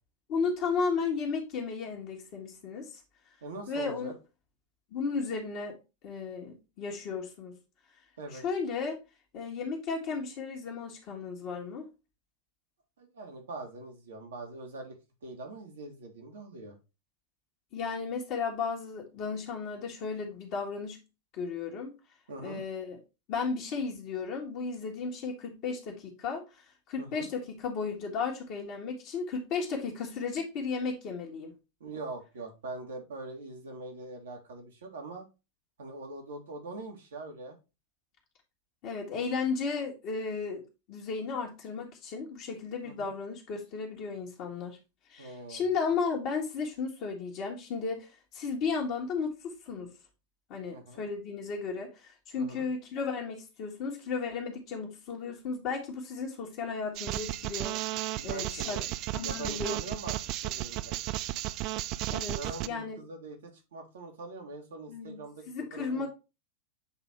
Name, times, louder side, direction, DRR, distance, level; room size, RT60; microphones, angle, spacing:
voice 1, 0.3-3.0 3.7-4.1 4.9-5.8 6.0-7.6 8.3-9.0 9.3-11.9 17.7-21.0 21.4-21.9 22.4-23.0 23.3-31.5 38.8-44.8 45.1-49.9 50.5-58.8 59.1-60.1 62.1-62.4 62.6-63.0 64.9-66.1, left 5 dB, 40° left, 1.7 m, -34 dB
voice 2, 3.4-4.1 8.2-8.4 13.0-15.0 15.2-16.7 22.3-22.6 27.0-27.3 31.8-35.2 35.8-37.6 42.8-43.1 45.2-45.6 50.7-51.0 52.4-52.7 58.2-58.8 59.2-60.2 60.4-61.0 62.4-65.4 65.7-66.1, right 2 dB, 65° right, 2.0 m, -42 dB
sound 1, 57.0-62.7, right 15 dB, 40° right, 0.4 m, -34 dB
8.0 x 3.4 x 4.4 m
figure-of-eight pair, 90°, 0 cm